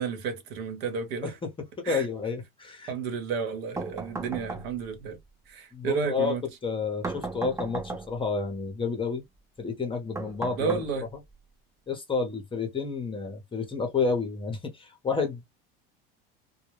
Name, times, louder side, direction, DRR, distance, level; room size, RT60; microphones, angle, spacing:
voice 1, 0.0-1.4 1.8-2.1 2.9-5.2 5.5-6.4 10.6-11.0, right 6 dB, 70° right, 1.1 m, -31 dB
voice 2, 1.6-2.9 5.7-6.3 6.6-9.2 9.6-10.8 11.9-15.4, left 4 dB, 20° left, 0.8 m, -30 dB
sound 1, 3.8-5.0 7.0-8.3 10.1-11.3, right 3 dB, 10° right, 0.4 m, -36 dB
2.2 x 2.1 x 3.0 m
supercardioid pair, 110°, 29 cm